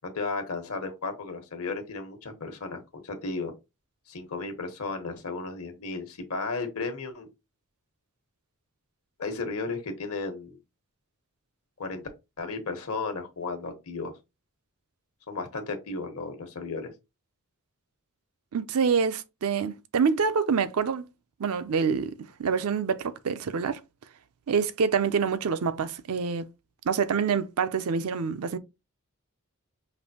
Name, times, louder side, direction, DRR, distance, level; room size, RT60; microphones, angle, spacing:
voice 1, 0.0-3.5 4.1-7.3 9.2-10.6 11.8-12.0 12.4-14.1 15.3-16.9, left 3 dB, 70° left, 1.1 m, -34 dB
voice 2, 18.5-21.1 21.4-23.8 24.5-26.5 26.9-28.6, right 6 dB, 70° right, 0.5 m, -26 dB
5.2 x 2.6 x 2.8 m
head